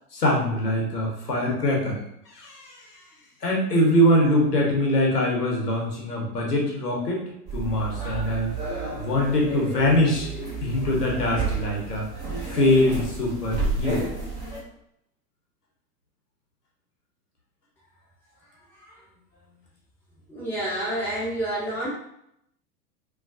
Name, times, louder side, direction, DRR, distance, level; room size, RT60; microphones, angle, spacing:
voice 1, 0.1-2.9 3.4-7.2 7.5-8.5 8.9-10.3 10.6-12.1 12.4-14.0, left 1 dB, 80° left, -2 dB, 0.9 m, -23 dB
sound 1, 7.5-14.6, right 3 dB, 15° right, 0.4 m, -31 dB
voice 2, 20.3-21.9, right 1 dB, 5° left, -8 dB, 0.8 m, -28 dB
2.3 x 2.2 x 2.4 m, 0.76 s
figure-of-eight pair, 95°, 46 cm